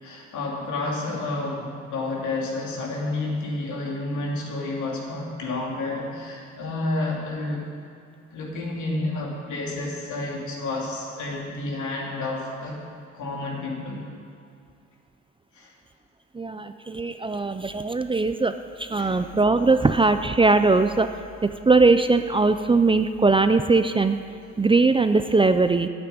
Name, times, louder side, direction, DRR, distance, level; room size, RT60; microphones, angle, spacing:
voice 1, 0.0-7.6 8.3-12.8 13.1-14.0 15.5-15.7 19.0-19.2, left 2 dB, 75° left, -2 dB, 2.9 m, -30 dB
voice 2, 16.4-18.5 18.9-21.1 21.7-24.2 24.6-25.9, right 3 dB, 15° right, 9 dB, 0.5 m, -20 dB
8.9 x 8.9 x 9.4 m, 2.4 s
cardioid pair, 90°, 30 cm